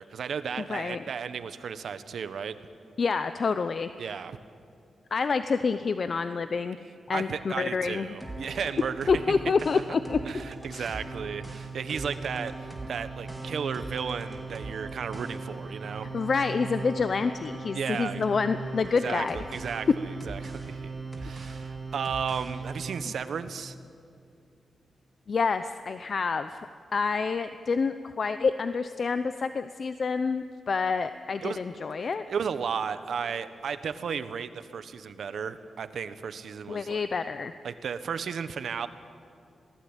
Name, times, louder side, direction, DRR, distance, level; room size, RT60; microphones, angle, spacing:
voice 1, 0.0-2.5 4.0-4.4 7.1-9.4 10.2-16.1 17.7-18.2 19.0-23.7 31.4-31.6 32.3-37.0 37.6-38.9, right 6 dB, 75° right, 11 dB, 1.3 m, -34 dB
voice 2, 0.7-1.0 3.0-3.9 5.1-6.8 7.1-8.1 9.1-10.2 10.7-10.9 16.1-19.4 25.3-32.3 36.7-37.5, left 5 dB, 50° left, 10 dB, 0.7 m, -28 dB
sound 1, 8.2-23.0, right 3 dB, 5° right, 3.5 m, -38 dB
26.5 x 18.5 x 9.1 m, 2.4 s
wide cardioid pair, 135°, 0 cm